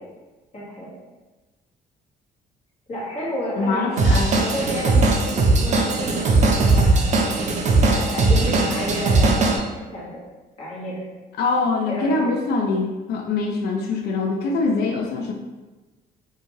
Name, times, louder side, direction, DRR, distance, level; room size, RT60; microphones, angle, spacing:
voice 1, 0.5-0.9 2.9-6.3 6.7-7.2 7.8-10.2 10.6-11.0 11.9-12.2, equal, 40° left, -7 dB, 1.3 m, -31 dB
voice 2, 3.6-4.3 11.4-15.3, left 3 dB, 70° left, 2 dB, 0.4 m, -23 dB
Drum kit / Drum, 4.0-9.6, right 3 dB, 45° right, 0.4 m, -19 dB
2.7 x 2.3 x 3.0 m, 1.2 s
cardioid pair, 105°, 17 cm